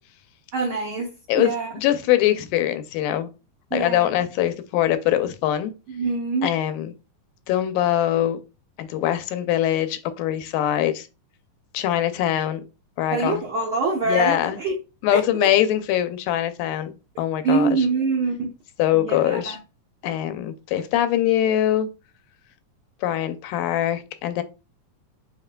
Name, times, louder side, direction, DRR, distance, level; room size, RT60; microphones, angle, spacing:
voice 1, 0.5-1.7 3.7-4.1 5.9-6.5 13.1-14.8 15.1-15.5 17.4-18.5 18.9-19.6, right 4 dB, 80° right, 1.2 m, -25 dB
voice 2, 1.3-3.3 3.7-5.7 6.4-6.9 7.5-8.4 8.8-11.1 11.7-12.6 13.0-13.4 14.1-14.6 15.0-16.9 17.2-17.7 18.8-19.6 20.0-21.9 23.0-24.4, left 12 dB, 85° left, 2.1 m, -22 dB
7.2 x 2.7 x 2.2 m
omnidirectional pair, 3.8 m